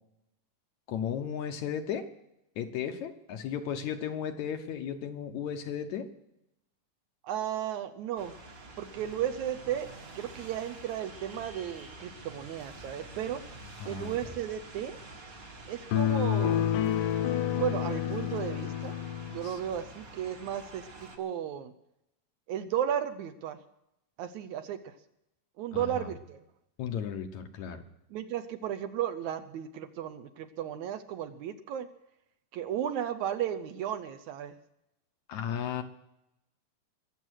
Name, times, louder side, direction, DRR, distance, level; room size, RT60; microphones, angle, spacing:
voice 1, 0.9-2.1 2.6-6.1 13.8-14.2 19.4-19.6 25.7-26.1 26.8-27.8 35.3-35.8, left 8 dB, 70° left, 7 dB, 2.0 m, -35 dB
voice 2, 7.2-8.4 8.8-9.9 10.2-13.4 13.9-15.0 15.7-16.7 17.5-18.9 19.3-20.9 21.2-21.7 22.5-23.6 24.2-24.8 25.6-26.4 28.1-31.9 32.5-34.5, right 10 dB, 75° right, 8 dB, 1.9 m, -34 dB
sound 1, 8.2-21.2, right 2 dB, 35° right, 1.5 m, -48 dB
sound 2, 15.9-19.5, left 10 dB, 85° left, 2.4 m, -29 dB
22.0 x 7.5 x 6.3 m, 0.84 s
omnidirectional pair, 3.8 m